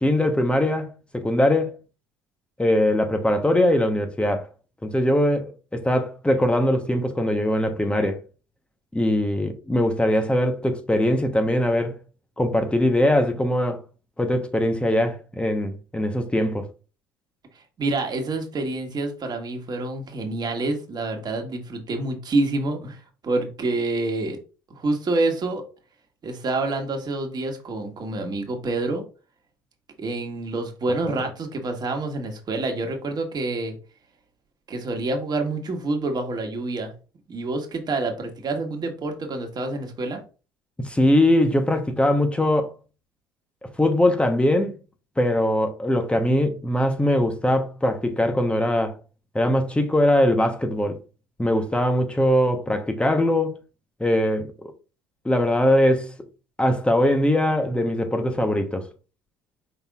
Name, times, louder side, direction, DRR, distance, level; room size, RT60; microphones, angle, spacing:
voice 1, 0.0-1.7 2.6-4.5 4.8-8.2 8.9-11.9 12.4-13.8 14.2-16.7 40.8-42.7 43.8-44.8 45.2-49.0 49.3-51.0 51.4-53.6 54.0-54.7 55.2-56.1 56.6-58.8, left 1 dB, 10° left, 1.0 m, -21 dB
voice 2, 17.8-24.4 24.7-25.6 26.2-29.0 30.0-33.7 34.7-36.9 37.3-40.2, right 2 dB, 40° right, 1.5 m, -27 dB
5.5 x 4.0 x 2.4 m
hypercardioid pair, 70°, 11 cm